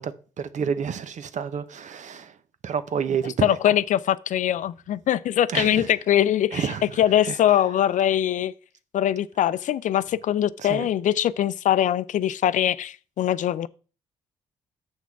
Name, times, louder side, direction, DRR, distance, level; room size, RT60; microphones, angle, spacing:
voice 1, 0.0-2.4 2.6-3.7 5.5-5.9 6.5-7.6 10.6-10.9, right 7 dB, 60° right, 0.8 m, -30 dB
voice 2, 3.4-6.7 7.0-8.5 8.9-13.7, left 11 dB, 60° left, 0.5 m, -22 dB
7.2 x 6.0 x 4.6 m
hypercardioid pair, 50°, 14 cm